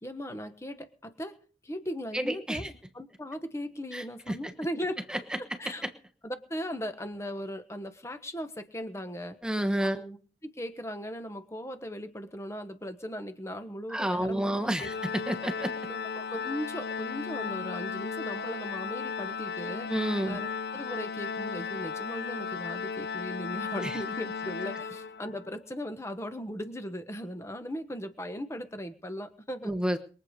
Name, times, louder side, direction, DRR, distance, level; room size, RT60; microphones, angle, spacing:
voice 1, 0.0-5.0 5.6-5.8 6.2-9.4 9.8-10.2 10.4-14.9 15.9-20.0 20.3-29.7, equal, 15° left, 8 dB, 1.3 m, -38 dB
voice 2, 2.1-2.7 3.9-4.5 5.1-5.2 9.4-10.0 13.9-14.9 15.3-15.7 19.9-20.4 23.8-24.0 29.6-30.0, right 1 dB, 5° right, 7 dB, 1.2 m, -30 dB
Organ, 14.8-25.5, left 5 dB, 65° left, 0.6 m, -35 dB
22.5 x 8.1 x 5.3 m, 0.40 s
head